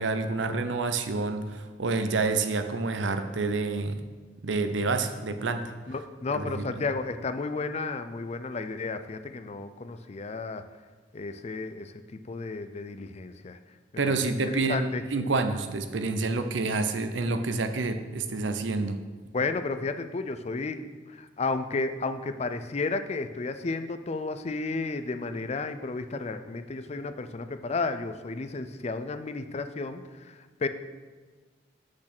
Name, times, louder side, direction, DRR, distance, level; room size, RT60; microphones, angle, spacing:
voice 1, 0.0-4.0 4.4-5.6 6.3-6.7 14.0-19.0, right 3 dB, 90° right, 9 dB, 0.7 m, -28 dB
voice 2, 5.9-10.6 11.1-13.6 14.1-15.0 19.3-30.7, left 3 dB, 35° left, 10 dB, 0.4 m, -33 dB
6.4 x 6.1 x 6.0 m, 1.4 s
head